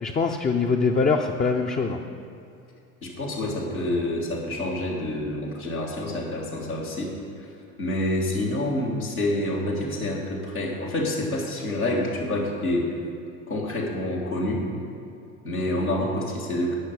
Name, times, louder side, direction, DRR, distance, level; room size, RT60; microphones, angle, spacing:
voice 1, 0.0-2.0, left 4 dB, 20° left, 2 dB, 0.6 m, -23 dB
voice 2, 3.0-7.5 7.8-13.0 13.5-14.7 15.4-16.8, left 1 dB, 90° left, -6 dB, 1.9 m, -27 dB
17.0 x 5.9 x 5.2 m, 2.6 s
figure-of-eight pair, 65°, 42 cm